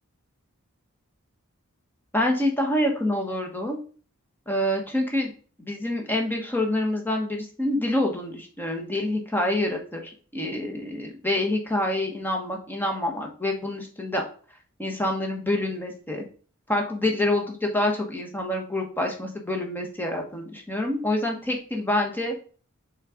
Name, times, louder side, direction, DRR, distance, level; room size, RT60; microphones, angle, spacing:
voice 1, 2.1-3.8 4.5-5.3 5.6-10.0 10.3-14.2 14.8-16.2 16.7-22.3, left 1 dB, 10° left, 2 dB, 1.2 m, -26 dB
6.4 x 3.8 x 4.9 m, 0.41 s
head